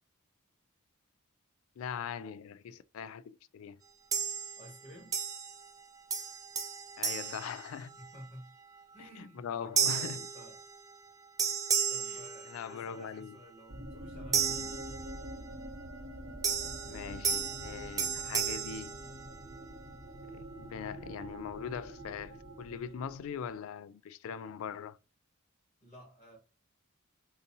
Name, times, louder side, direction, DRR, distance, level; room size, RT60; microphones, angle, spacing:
voice 1, 1.8-3.8 7.0-8.0 9.0-10.2 12.1-12.2 12.5-13.4 16.8-19.0 20.3-25.0, left 7 dB, 70° left, 0.3 m, -41 dB
sound 1, 4.1-4.8 5.1-5.8 6.1-8.3 8.8-9.1 9.8-11.1 11.4-13.0 14.3-15.5 16.4-19.7, right 6 dB, 15° right, 0.3 m, -34 dB
voice 2, 4.6-5.2 8.0-8.5 8.9-10.6 11.9-15.1 25.8-26.4, equal, 35° left, 1.5 m, -51 dB
sound 2, 13.7-23.5, right 1 dB, 75° right, 1.1 m, -46 dB
3.9 x 2.6 x 2.7 m
head